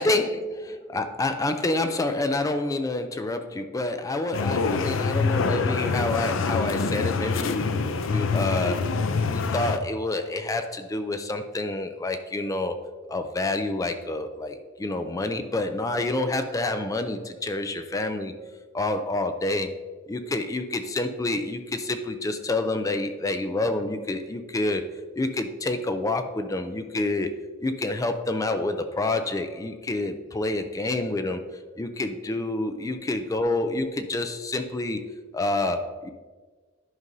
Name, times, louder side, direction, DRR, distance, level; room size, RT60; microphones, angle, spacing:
voice 1, 0.0-7.7 8.1-8.9 9.3-12.8 13.1-18.3 18.7-19.7 20.1-24.8 25.2-27.3 27.6-31.4 31.8-35.0 35.3-36.1, left 2 dB, 15° left, 8 dB, 0.3 m, -28 dB
sound 1, 4.3-9.8, left 4 dB, 75° left, 0.5 m, -25 dB
11.0 x 5.3 x 2.6 m, 1.4 s
head